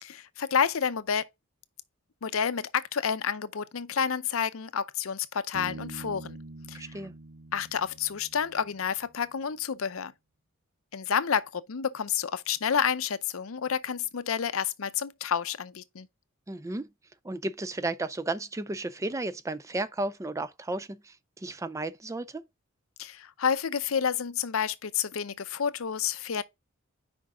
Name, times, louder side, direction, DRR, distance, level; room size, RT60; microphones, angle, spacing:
voice 1, 0.0-1.3 2.2-6.4 6.7-6.9 7.5-10.1 10.9-16.1 23.0-26.4, left 7 dB, 90° left, 0.6 m, -29 dB
Bass guitar, 5.5-9.0, right 2 dB, 60° right, 0.6 m, -44 dB
voice 2, 6.7-7.1 16.5-16.9 17.2-22.4, right 2 dB, 15° right, 0.4 m, -33 dB
6.1 x 5.2 x 3.6 m
head